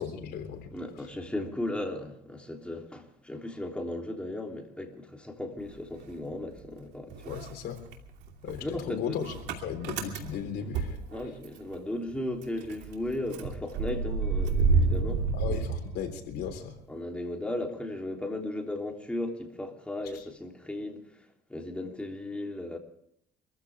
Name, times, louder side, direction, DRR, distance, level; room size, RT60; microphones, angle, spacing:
voice 1, 0.0-0.7 7.3-7.8 8.4-9.3 9.6-11.0 15.3-16.8, left 8 dB, 75° left, 3.6 m, -36 dB
voice 2, 0.7-7.4 8.6-9.2 10.6-10.7 11.1-15.3 16.9-22.8, left 1 dB, 5° left, 3.2 m, -36 dB
Motor vehicle (road) / Engine starting, 5.6-6.8 7.1-11.8 12.1-12.2 12.4-16.5, right 4 dB, 90° right, 2.7 m, -30 dB
25.5 x 14.5 x 3.6 m
cardioid pair, 110°, 17 cm